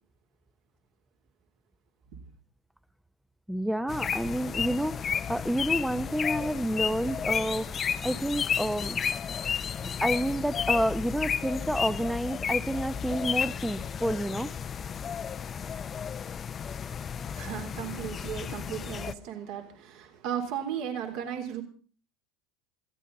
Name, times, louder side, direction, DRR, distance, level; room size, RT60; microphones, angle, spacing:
voice 1, 3.5-9.0 9.8-14.5, right 1 dB, ahead, 0.9 m, -29 dB
red crested cardinal, 3.9-19.1, left 7 dB, 30° left, 0.8 m, -32 dB
voice 2, 17.2-21.6, right 9 dB, 55° right, 3.5 m, -36 dB
20.5 x 15.5 x 4.0 m
hypercardioid pair, 80°, 0 cm